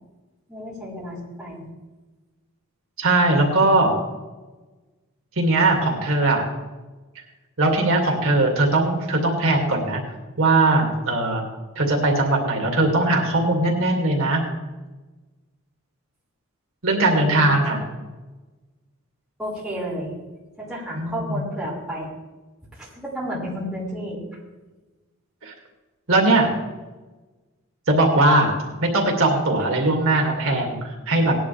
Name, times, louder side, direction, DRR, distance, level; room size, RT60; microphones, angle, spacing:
voice 1, 0.5-1.6 17.3-17.8 19.4-20.1 20.6-22.1 22.7-24.2, equal, 5° right, -8 dB, 5.0 m, -32 dB
voice 2, 3.0-4.0 5.4-6.4 7.6-10.0 10.4-11.5 11.8-14.4 16.8-17.8 21.0-21.4 25.4-25.5 26.1-26.5 27.9-28.6 28.9-31.4, right 2 dB, 75° right, 1 dB, 2.3 m, -20 dB
18.0 x 10.5 x 3.4 m, 1.2 s
head